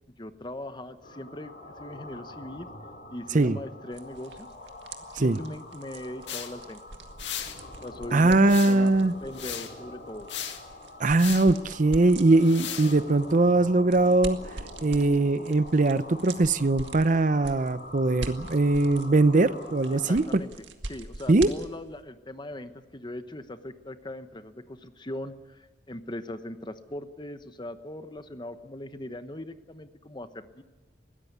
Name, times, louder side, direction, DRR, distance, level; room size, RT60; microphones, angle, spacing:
voice 1, 0.2-2.7 3.1-4.5 5.1-6.8 7.8-8.9 9.2-10.3 19.9-30.6, left 1 dB, 25° left, 10 dB, 1.0 m, -40 dB
sound 1, 1.0-20.2, left 1 dB, 50° left, 6.0 m, -45 dB
sound 2, 3.9-22.0, right 2 dB, 80° right, 1.9 m, -44 dB
sound 3, 6.3-6.5 7.2-7.6 8.4-8.9 9.3-9.7 10.3-10.6 11.2-11.5 12.4-13.0, left 10 dB, 80° left, 2.0 m, -36 dB
voice 2, 8.1-9.1 11.0-14.4 14.8-20.4 21.3-21.5, right 2 dB, 45° right, 15 dB, 0.6 m, -21 dB
21.5 x 16.5 x 9.5 m, 1.2 s
head